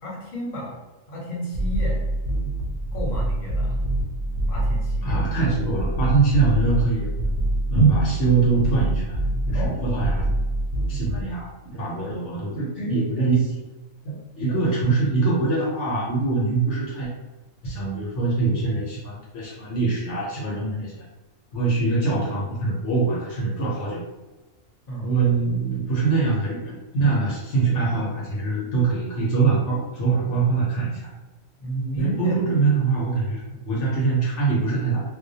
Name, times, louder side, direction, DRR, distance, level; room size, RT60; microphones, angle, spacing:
voice 1, 0.0-0.8 1.1-2.0 2.9-3.8 4.5-5.2 9.5-10.1 24.9-25.2 31.6-32.3 33.5-33.6, equal, 40° left, -5 dB, 0.8 m, -32 dB
sound 1, 1.5-11.2, right 1 dB, 65° right, 0.5 m, -25 dB
voice 2, 5.0-7.1 7.7-9.2 9.5-10.2 10.9-13.6 14.0-17.1 17.6-21.0 21.5-24.0 25.0-31.1 32.0-35.0, right 4 dB, 70° left, -5 dB, 0.9 m, -23 dB
2.2 x 2.1 x 2.6 m, 1.1 s
omnidirectional pair, 1.3 m